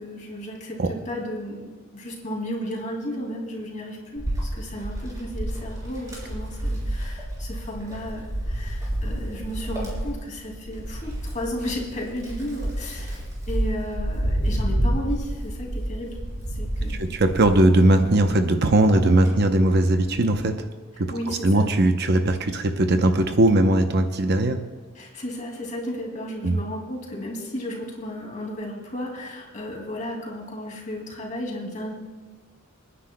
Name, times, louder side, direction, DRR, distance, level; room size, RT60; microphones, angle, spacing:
voice 1, 0.0-13.2 13.5-16.2 16.5-17.2 21.1-21.7 24.9-31.9, equal, 35° left, 0 dB, 2.4 m, -34 dB
Wind, 4.2-18.3 18.7-20.2, right 1 dB, 15° right, 3.8 m, -29 dB
voice 2, 16.9-20.7 21.0-24.6 26.4-26.6, right 1 dB, 55° right, 6 dB, 0.7 m, -19 dB
28.0 x 9.9 x 2.2 m, 1.5 s
head